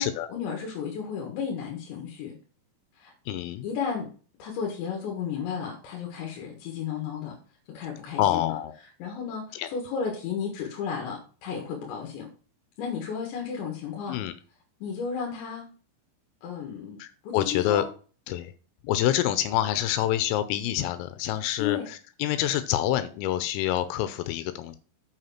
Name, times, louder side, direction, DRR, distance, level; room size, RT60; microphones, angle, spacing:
voice 1, 0.0-2.4 3.0-3.1 3.6-4.1 4.4-7.4 7.7-8.6 9.0-12.3 12.8-14.2 14.8-15.7 16.4-17.0 17.2-17.9 21.6-21.9, left 6 dB, 70° left, 0 dB, 3.7 m, -33 dB
voice 2, 3.3-3.7 8.2-8.7 9.6-9.7 14.1-14.3 17.0-17.8 18.3-18.5 18.8-24.8, left 12 dB, 85° left, 11 dB, 3.3 m, -27 dB
8.0 x 5.5 x 5.8 m, 0.39 s
omnidirectional pair, 5.8 m